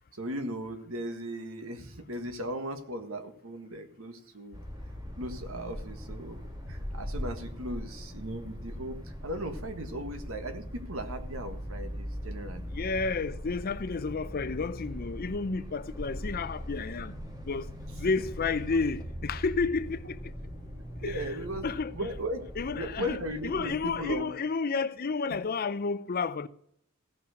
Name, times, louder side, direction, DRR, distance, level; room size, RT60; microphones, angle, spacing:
voice 1, 0.1-4.6 5.2-12.7 17.9-18.0 21.0-21.7 21.9-24.3, right 1 dB, 70° right, 1.6 m, -37 dB
sound 1, 4.5-24.1, equal, 20° right, 1.9 m, -40 dB
voice 2, 12.7-17.1 17.5-17.7 18.0-20.3 21.0-21.4 21.6-22.0 22.6-26.5, left 4 dB, 45° left, 0.5 m, -31 dB
16.0 x 5.6 x 6.4 m
head